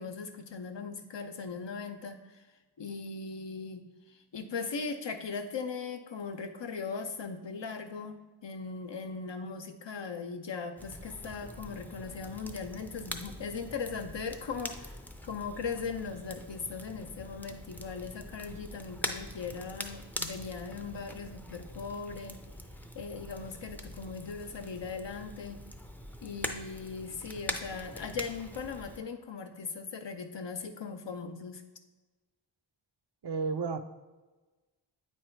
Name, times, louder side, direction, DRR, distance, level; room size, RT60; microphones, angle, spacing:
voice 1, 0.0-2.4 2.8-3.8 4.1-8.2 8.4-15.0 15.2-22.4 23.0-25.6 26.2-31.6, left 5 dB, 75° left, 6 dB, 0.7 m, -39 dB
Crackle, 10.8-29.0, left 1 dB, 5° left, 0.5 m, -43 dB
voice 2, 33.2-33.8, right 4 dB, 65° right, 8 dB, 0.6 m, -31 dB
8.8 x 3.0 x 4.4 m, 1.2 s
wide cardioid pair, 50°, 44 cm